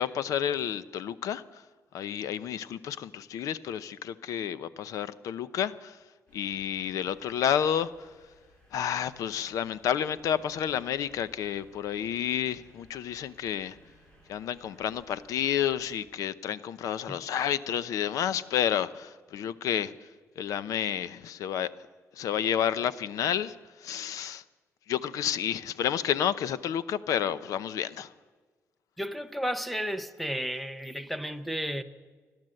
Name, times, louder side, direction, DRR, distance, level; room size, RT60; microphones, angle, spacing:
voice 1, 0.0-1.6 1.9-6.0 6.3-8.1 8.7-13.8 14.3-20.1 20.4-21.7 22.1-24.4 24.9-28.1, left 9 dB, 90° left, 0.7 m, -30 dB
sound 1, 6.3-16.0, left 1 dB, 20° left, 4.8 m, -60 dB
voice 2, 29.0-31.8, equal, ahead, 0.8 m, -33 dB
30.0 x 12.0 x 7.8 m
wide cardioid pair, 155°, 6 cm